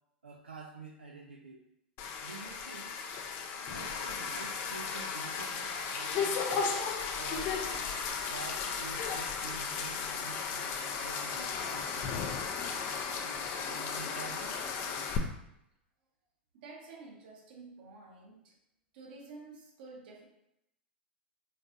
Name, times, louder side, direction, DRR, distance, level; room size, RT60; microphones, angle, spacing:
voice 1, 0.2-1.6 2.2-3.0 3.5-6.4 7.1-12.2 13.2-14.7, right 4 dB, 90° right, -1 dB, 0.4 m, -48 dB
sound 1, 2.0-15.2, left 5 dB, 45° left, 0.5 m, -35 dB
voice 2, 16.5-18.5 18.9-20.2, right 3 dB, 60° right, -1 dB, 1.2 m, -50 dB
4.0 x 3.5 x 2.6 m, 0.82 s
hypercardioid pair, 95°, 6 cm